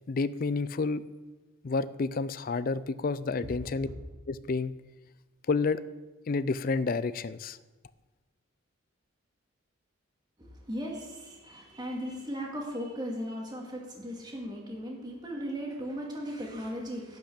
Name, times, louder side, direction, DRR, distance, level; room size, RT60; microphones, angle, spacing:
voice 1, 0.1-1.0 1.6-3.9 4.3-4.7 5.5-5.8 6.3-7.6, left 4 dB, 40° left, 16 dB, 0.4 m, -29 dB
voice 2, 10.4-17.2, equal, 20° right, -1 dB, 2.2 m, -37 dB
11.5 x 5.9 x 8.5 m, 1.2 s
head